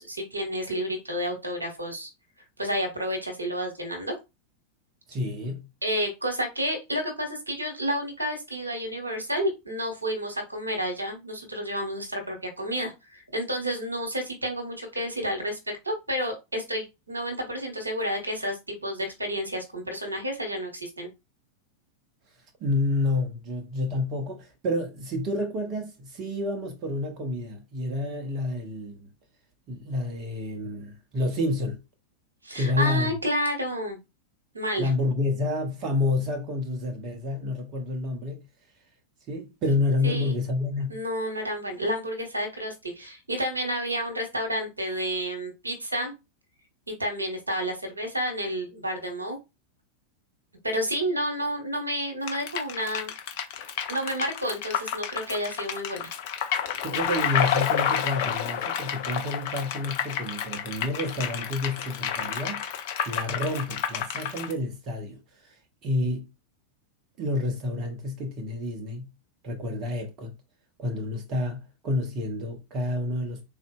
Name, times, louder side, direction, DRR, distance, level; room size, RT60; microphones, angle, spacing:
voice 1, 0.0-2.1 2.6-4.1 5.8-15.6 15.8-21.1 32.4-34.0 34.5-34.9 40.0-40.4 40.9-46.1 46.9-49.4 50.6-53.1 53.9-56.0, equal, 80° right, 1.0 m, -30 dB
voice 2, 5.1-5.7 22.6-29.1 29.7-31.8 32.5-33.2 34.8-38.4 39.3-41.0 56.8-62.6 63.1-65.2 65.4-65.6 65.8-66.3 67.2-69.1 69.4-70.3 70.8-73.5, left 2 dB, 35° right, 0.8 m, -29 dB
sound 1, 52.3-64.5, left 9 dB, 50° left, 0.6 m, -30 dB
3.8 x 2.4 x 2.2 m
figure-of-eight pair, 90°, 0 cm